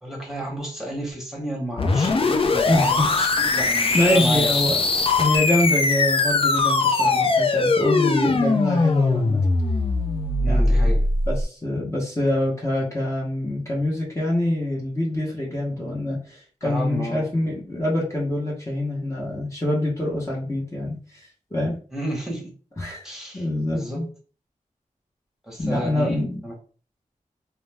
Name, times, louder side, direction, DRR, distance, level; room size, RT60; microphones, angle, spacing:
voice 1, 0.0-4.5 10.4-11.0 16.6-17.2 21.9-22.5 23.0-23.4 23.7-24.0 25.4-26.5, right 1 dB, 5° right, -2 dB, 1.0 m, -31 dB
sound 1, 1.8-11.4, left 3 dB, 40° left, 0.4 m, -21 dB
voice 2, 2.7-3.1 3.9-4.8 5.2-9.4 10.5-10.9 11.3-21.8 22.8-24.1 25.6-26.4, left 1 dB, 20° left, -5 dB, 0.9 m, -25 dB
2.4 x 2.0 x 3.3 m, 0.40 s
wide cardioid pair, 65°, 14 cm